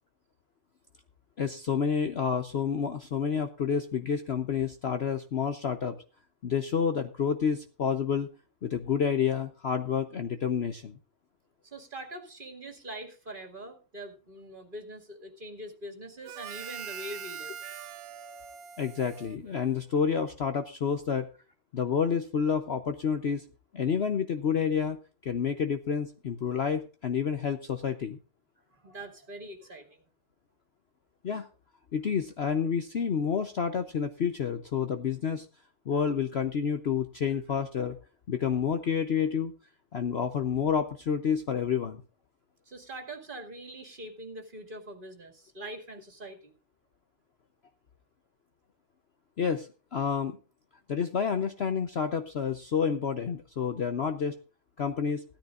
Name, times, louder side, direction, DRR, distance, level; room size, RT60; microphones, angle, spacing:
voice 1, 1.4-6.0 6.4-8.3 8.6-11.0 18.8-21.3 21.7-23.4 23.7-28.2 31.2-31.5 31.9-35.5 35.9-38.0 38.3-39.5 39.9-42.0 49.4-50.4 50.9-54.4 54.8-55.2, left 7 dB, 50° left, 8 dB, 0.9 m, -29 dB
voice 2, 11.6-17.5 28.7-30.0 42.7-46.5, right 1 dB, 35° right, 6 dB, 2.3 m, -43 dB
Harmonica, 16.2-20.0, right 8 dB, 70° right, 1.1 m, -43 dB
16.0 x 13.0 x 2.5 m, 0.35 s
omnidirectional pair, 1.7 m